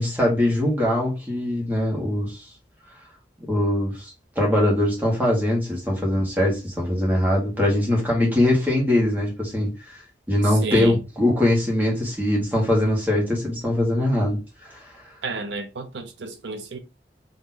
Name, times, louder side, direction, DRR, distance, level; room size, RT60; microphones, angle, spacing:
voice 1, 0.0-2.5 3.5-10.0 10.3-14.4 14.6-14.8, left 1 dB, 10° right, 1.5 m, -22 dB
voice 2, 10.5-11.0 15.2-16.8, right 3 dB, 85° right, 0.7 m, -31 dB
4.0 x 3.0 x 2.8 m
head